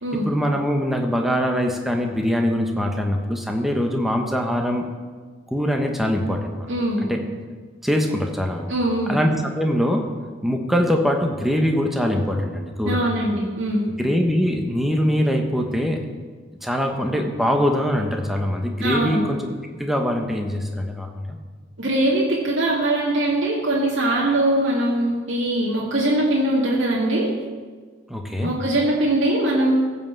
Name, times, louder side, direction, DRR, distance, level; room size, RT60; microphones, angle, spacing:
voice 1, 0.2-4.9 5.5-6.7 7.0-7.2 7.8-8.7 9.1-10.1 10.4-13.1 14.0-16.1 16.6-19.5 19.8-21.4 28.1-28.5, equal, ahead, 2 dB, 1.0 m, -23 dB
voice 2, 6.7-7.0 8.7-9.2 12.9-13.9 18.8-19.2 21.8-27.3 28.4-29.7, right 1 dB, 75° right, -5 dB, 2.2 m, -21 dB
15.0 x 5.6 x 7.5 m, 1.5 s
head